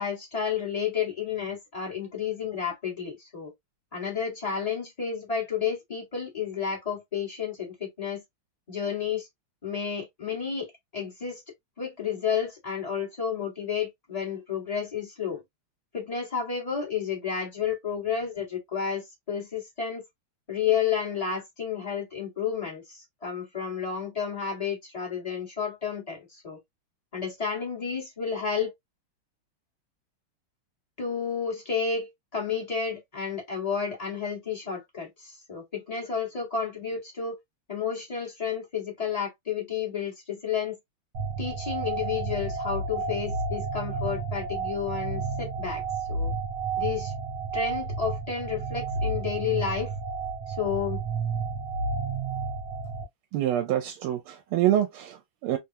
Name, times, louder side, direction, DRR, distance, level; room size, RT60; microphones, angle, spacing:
voice 1, 0.0-3.5 3.9-8.2 8.7-9.3 9.6-10.7 10.9-11.4 11.8-15.4 15.9-20.0 20.5-26.6 27.1-28.7 31.0-37.4 37.7-40.8 41.4-45.8 46.1-46.3 46.8-47.1 47.5-49.9 50.5-51.0, left 7 dB, 20° left, 1.2 m, -31 dB
sound 1, 41.1-53.0, right 4 dB, 65° right, 1.6 m, -31 dB
voice 2, 53.3-55.6, right 12 dB, 85° right, 1.5 m, -26 dB
3.6 x 2.3 x 2.6 m
omnidirectional pair, 2.4 m